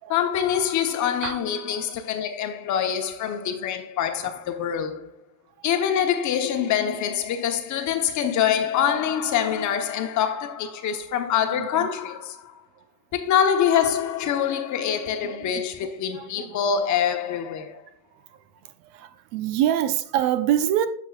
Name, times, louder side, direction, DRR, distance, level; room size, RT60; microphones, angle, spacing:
voice 1, 0.1-5.2 5.6-12.6 13.1-17.8, left 8 dB, 40° left, 1.0 m, -25 dB
voice 2, 11.5-11.9 12.8-12.9 15.2-16.8 18.3-18.4 18.8-20.9, right 11 dB, 70° right, 0.8 m, -27 dB
8.2 x 7.0 x 2.4 m
supercardioid pair, 135°, 46 cm